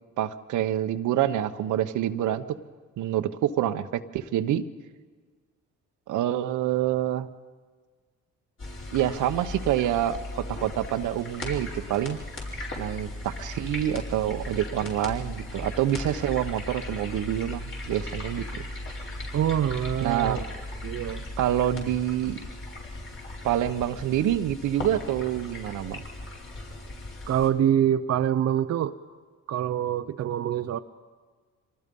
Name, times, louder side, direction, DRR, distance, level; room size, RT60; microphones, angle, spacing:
voice 1, 0.2-2.6 3.0-4.6 6.1-7.3 8.9-12.2 12.8-18.7 20.0-20.4 21.4-22.4 23.4-26.0, right 11 dB, 80° right, 10 dB, 1.0 m, -27 dB
sound 1, 8.6-27.5, left 1 dB, 40° left, 5.2 m, -37 dB
voice 2, 19.3-20.4 20.8-21.2 27.3-29.0 29.5-30.8, right 10 dB, 55° right, 9 dB, 0.7 m, -25 dB
25.5 x 19.0 x 5.4 m, 1.5 s
cardioid pair, 90°, 30 cm